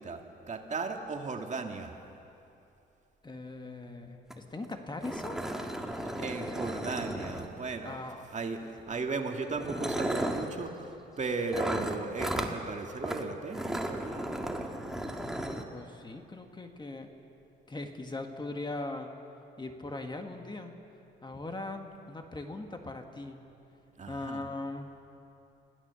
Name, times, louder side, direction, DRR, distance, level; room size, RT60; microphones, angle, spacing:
voice 1, 0.0-1.9 6.2-8.0 8.3-8.6 8.9-14.2 14.8-14.9 24.0-24.4, right 4 dB, 35° right, 3 dB, 2.0 m, -36 dB
voice 2, 3.2-5.4 7.8-8.3 9.0-9.1 15.2-17.1 17.7-19.1 19.6-20.8 21.2-23.4 24.1-24.9, left 2 dB, 20° left, 5 dB, 1.7 m, -40 dB
sound 1, 4.3-4.4 4.6-4.7 5.0-7.8 8.8-9.0 9.5-10.5 11.5-12.5 13.0-13.2 13.5-15.6, right 1 dB, ahead, 1.9 m, -35 dB
26.0 x 16.0 x 7.0 m, 2.8 s
cardioid pair, 90°, 20 cm